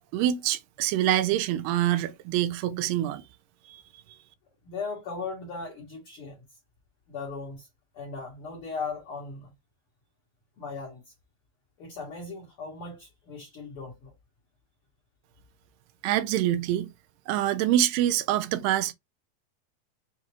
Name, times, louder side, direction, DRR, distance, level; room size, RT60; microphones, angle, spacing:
voice 1, 0.1-3.2 3.7-3.8 16.0-16.9 17.3-18.9, right 12 dB, 85° right, 2.3 m, -25 dB
voice 2, 4.6-6.4 7.1-7.7 7.9-9.5 10.6-11.1 11.8-14.1, left 4 dB, 60° left, 1.6 m, -38 dB
6.3 x 2.4 x 2.8 m
omnidirectional pair, 3.9 m